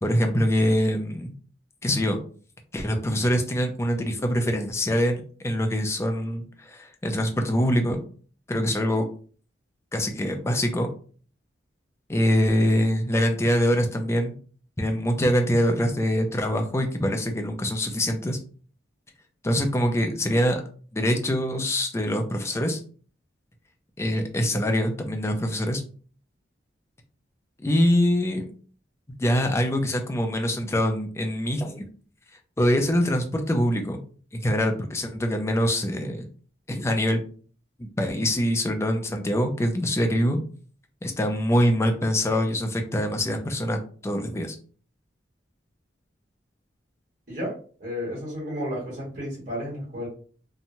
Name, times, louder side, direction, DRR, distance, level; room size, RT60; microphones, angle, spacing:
voice 1, 0.0-1.3 1.8-2.2 2.7-8.0 8.5-9.1 9.9-10.9 12.1-14.3 14.8-18.4 19.4-20.6 20.9-22.8 24.0-25.8 27.6-28.5 29.2-31.8 32.6-34.0 34.3-36.3 36.7-37.2 37.8-40.4 41.0-44.6, equal, 15° left, 4 dB, 0.4 m, -24 dB
voice 2, 47.8-50.1, equal, 45° right, -5 dB, 1.4 m, -32 dB
2.9 x 2.2 x 2.6 m, 0.42 s
head